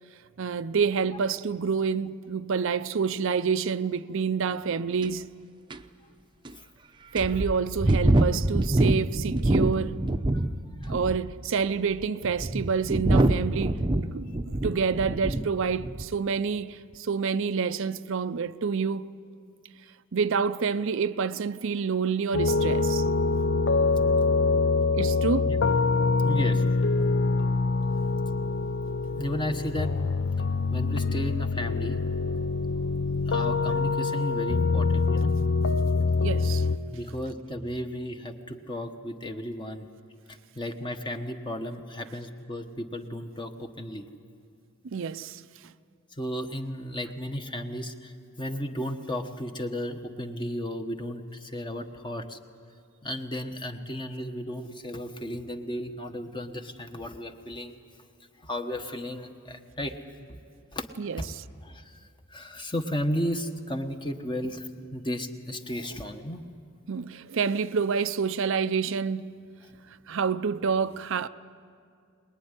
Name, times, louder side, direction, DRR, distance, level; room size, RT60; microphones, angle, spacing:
voice 1, 0.4-5.3 7.1-10.0 10.9-19.1 20.1-23.1 24.9-25.5 36.2-36.7 44.8-45.4 61.0-61.4 66.9-69.4 70.1-71.3, right 5 dB, 65° right, 0.5 m, -28 dB
sound 1, 5.0-5.1 5.7-5.8 6.4-6.5 7.2-10.5 10.8-11.3 12.0-15.5 15.8-16.1, right 1 dB, 20° right, 0.7 m, -25 dB
sound 2, 22.3-36.8, left 4 dB, 60° left, 0.7 m, -25 dB
voice 2, 26.2-26.6 29.1-29.9 30.7-32.1 33.3-35.3 36.9-39.9 40.3-44.0 46.2-48.1 48.4-52.4 53.0-57.8 58.4-60.0 60.3-60.4 60.7-60.9 61.2-61.3 61.6-61.9 62.3-66.4, equal, 25° left, 1.3 m, -34 dB
23.5 x 20.5 x 9.8 m
head